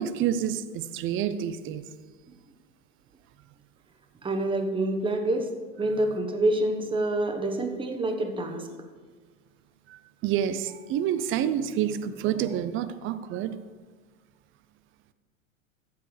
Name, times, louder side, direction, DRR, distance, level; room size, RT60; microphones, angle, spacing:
voice 1, 0.0-1.8 9.9-13.6, right 9 dB, 30° right, 0.6 m, -28 dB
voice 2, 4.2-5.5 5.8-8.6, right 1 dB, 10° right, 1.1 m, -27 dB
14.0 x 7.7 x 3.3 m
hypercardioid pair, 110°, 41 cm